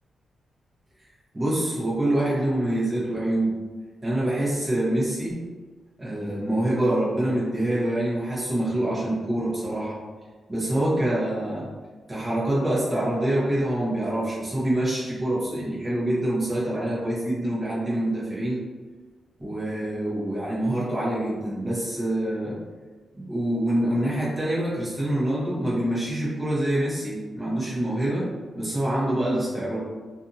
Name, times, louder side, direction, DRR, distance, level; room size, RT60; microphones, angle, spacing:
voice 1, 1.3-3.5 4.0-5.4 6.0-10.0 10.5-11.7 12.1-18.6 19.4-22.6 23.2-28.3 28.5-29.8, right 1 dB, 15° right, -8 dB, 0.9 m, -25 dB
2.6 x 2.5 x 2.6 m, 1.4 s
wide cardioid pair, 160°, 0 cm